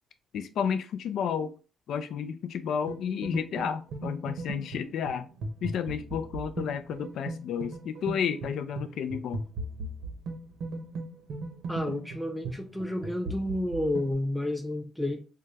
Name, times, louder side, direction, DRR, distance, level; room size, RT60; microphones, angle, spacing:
voice 1, 0.3-1.5 1.9-5.3 5.6-9.4, left 7 dB, 70° left, 0.3 m, -31 dB
sound 1, 2.9-14.1, right 2 dB, 85° right, 0.9 m, -38 dB
voice 2, 11.7-15.2, left 1 dB, ahead, 0.5 m, -31 dB
3.8 x 2.2 x 3.2 m
cardioid pair, 90°, 0 cm